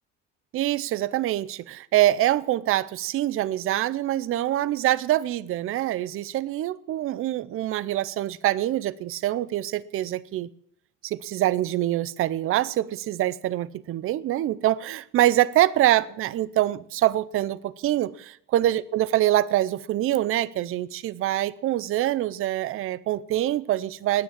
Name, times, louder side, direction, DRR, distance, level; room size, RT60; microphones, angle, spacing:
voice 1, 0.5-10.5 11.0-24.2, right 14 dB, 40° right, 20 dB, 0.5 m, -25 dB
18.0 x 9.8 x 7.4 m, 0.67 s
cardioid pair, 165°, 33 cm